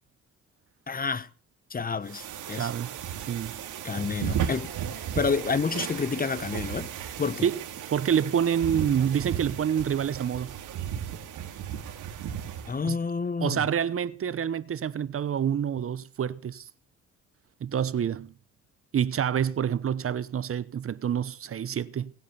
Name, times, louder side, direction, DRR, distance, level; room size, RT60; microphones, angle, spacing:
voice 1, 0.9-1.3 1.7-2.7 3.8-4.7 5.1-6.9 7.2-7.5 12.7-13.7, left 5 dB, 30° left, 1.0 m, -29 dB
sound 1, 2.1-12.8, right 9 dB, 85° right, 3.4 m, -35 dB
voice 2, 2.5-3.0 3.3-3.6 7.4-7.6 7.9-10.6 12.8-13.0 13.4-16.7 17.6-18.3 18.9-22.1, right 8 dB, 45° right, 1.0 m, -27 dB
19.0 x 9.6 x 6.9 m
cardioid pair, 90°, 30 cm